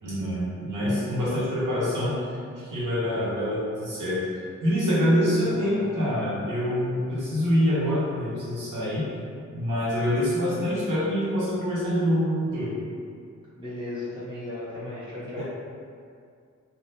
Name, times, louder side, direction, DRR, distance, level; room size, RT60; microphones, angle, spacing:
voice 1, 0.0-4.2 4.6-9.0 9.5-12.7 15.4-15.5, equal, 80° right, -8 dB, 0.9 m, -25 dB
voice 2, 13.5-15.4, left 2 dB, 15° right, -11 dB, 0.9 m, -36 dB
3.4 x 2.3 x 2.7 m, 2.2 s
wide cardioid pair, 160°, 31 cm